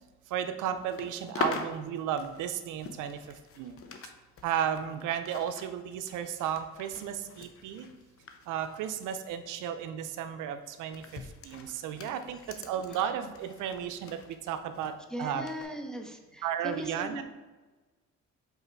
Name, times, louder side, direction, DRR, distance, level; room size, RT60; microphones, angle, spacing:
voice 1, 0.3-3.8 4.4-7.9 8.5-15.5 16.4-17.2, right 9 dB, 90° right, 9 dB, 0.6 m, -34 dB
sound 1, 0.8-4.1 4.4-9.3 9.6-9.9 10.7-14.9 15.5-15.6, left 4 dB, 50° left, 0.8 m, -42 dB
voice 2, 15.1-17.2, equal, ahead, 2 dB, 0.8 m, -38 dB
5.6 x 4.4 x 4.5 m, 1.2 s
cardioid pair, 90°, 30 cm